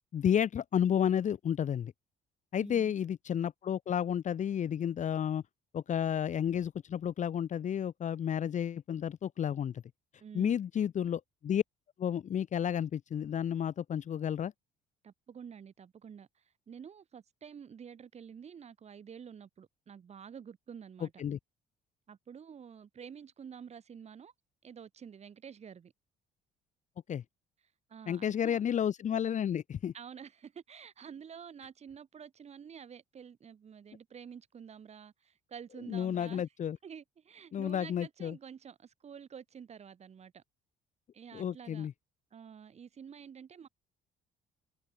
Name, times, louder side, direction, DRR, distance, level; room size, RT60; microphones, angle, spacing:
voice 1, 0.1-1.9 2.5-5.4 5.7-9.8 10.3-11.6 12.0-14.5 21.0-21.4 27.1-27.2 28.1-29.9 35.9-36.8 37.5-38.4 41.3-41.9, left 9 dB, 45° left, 1.6 m, -31 dB
voice 2, 2.5-2.9 10.2-10.5 15.0-16.3 16.7-21.2 22.1-24.3 24.6-25.9 27.9-28.6 29.9-36.4 36.8-40.4 41.1-41.9 42.3-43.7, right 7 dB, 40° right, 3.4 m, -49 dB
cardioid pair, 110°, 17 cm